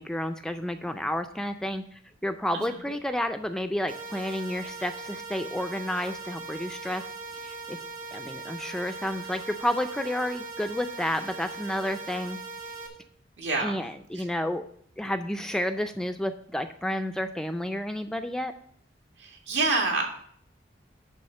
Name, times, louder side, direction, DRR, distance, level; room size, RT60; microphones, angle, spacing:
voice 1, 0.0-7.1 7.4-7.8 8.1-12.4 13.6-14.6 15.0-18.6, left 1 dB, 5° left, 7 dB, 0.3 m, -31 dB
sound 1, 3.9-12.9, right 3 dB, 40° right, 1.4 m, -40 dB
voice 2, 13.4-13.7 19.5-20.1, right 3 dB, 75° right, 1 dB, 1.9 m, -25 dB
10.5 x 3.5 x 6.5 m, 0.63 s
head